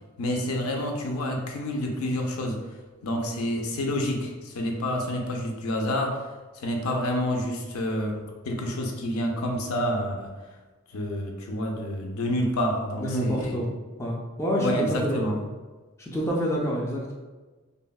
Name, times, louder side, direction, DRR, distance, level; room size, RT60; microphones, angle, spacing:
voice 1, 0.2-2.6 3.0-6.2 6.6-10.3 10.9-13.6 14.6-15.4, left 1 dB, 75° left, 2 dB, 0.4 m, -28 dB
voice 2, 13.0-13.7 14.0-15.2 16.0-17.1, equal, 10° left, -4 dB, 0.3 m, -27 dB
3.3 x 2.0 x 2.2 m, 1.3 s
head